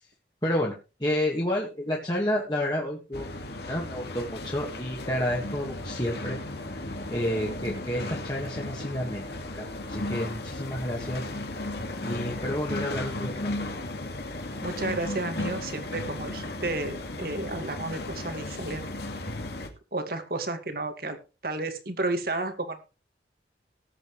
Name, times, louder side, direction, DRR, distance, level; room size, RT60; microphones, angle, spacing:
voice 1, 0.4-0.7 1.0-6.4 7.1-9.2 9.5-11.3 12.0-13.5, left 1 dB, 25° left, -2 dB, 2.0 m, -30 dB
sound 1, 3.1-19.7, left 2 dB, 65° left, 2.1 m, -35 dB
voice 2, 14.6-18.9 19.9-21.2 21.4-22.8, right 2 dB, 55° right, 7 dB, 2.1 m, -32 dB
19.0 x 8.1 x 3.3 m, 0.32 s
head